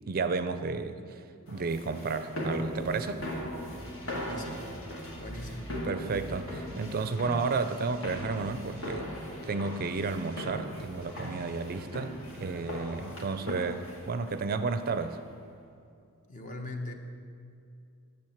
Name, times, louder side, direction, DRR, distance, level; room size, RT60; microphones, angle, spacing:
voice 1, 0.1-1.2 1.5-3.2 5.8-9.1 9.4-15.2, right 4 dB, 40° right, 10 dB, 0.4 m, -32 dB
sound 1, 1.5-15.4, equal, 60° left, 1.9 m, -39 dB
sound 2, 2.4-13.2, equal, 5° left, 1.0 m, -49 dB
voice 2, 4.0-4.7 5.2-5.7 16.3-16.9, left 2 dB, 35° left, 4 dB, 1.0 m, -41 dB
10.5 x 6.9 x 7.2 m, 2.5 s
head